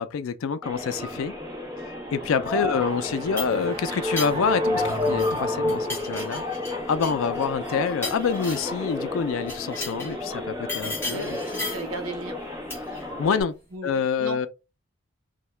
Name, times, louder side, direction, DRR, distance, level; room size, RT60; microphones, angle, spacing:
voice 1, 0.0-1.3 2.1-6.4 6.9-11.4 13.2-13.6 13.8-14.5, left 6 dB, 75° left, 0.4 m, -27 dB
sound 1, 0.6-13.4, left 2 dB, 10° right, 0.9 m, -33 dB
sound 2, 2.6-6.8, left 1 dB, 25° right, 0.5 m, -30 dB
sound 3, 3.0-5.4 5.7-8.8 9.4-10.2 10.7-11.9 12.7-13.0, left 2 dB, 10° left, 1.1 m, -36 dB
voice 2, 11.1-12.4 13.7-13.9 14.2-14.5, right 3 dB, 85° right, 0.8 m, -35 dB
2.7 x 2.2 x 3.2 m
head